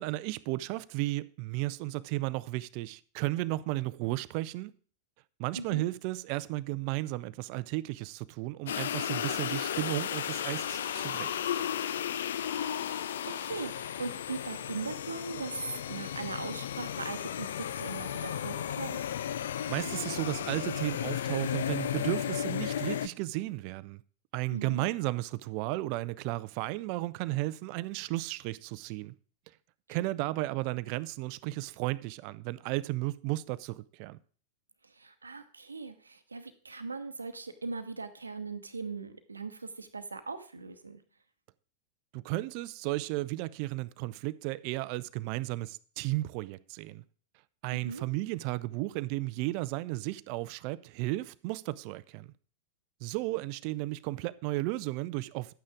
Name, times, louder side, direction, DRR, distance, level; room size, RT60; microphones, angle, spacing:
voice 1, 0.0-4.7 5.4-11.3 19.7-24.0 24.3-29.1 29.9-34.2 42.1-47.0 47.6-52.3 53.0-55.5, right 19 dB, 45° right, 0.4 m, -34 dB
voice 2, 5.5-5.9 12.9-13.1 13.4-19.0 24.5-24.9 34.8-41.0 47.7-48.0, right 4 dB, 80° right, 0.9 m, -40 dB
sound 1, 8.7-23.1, left 10 dB, 60° left, 0.4 m, -34 dB
11.0 x 8.7 x 3.6 m
figure-of-eight pair, 90°, 0 cm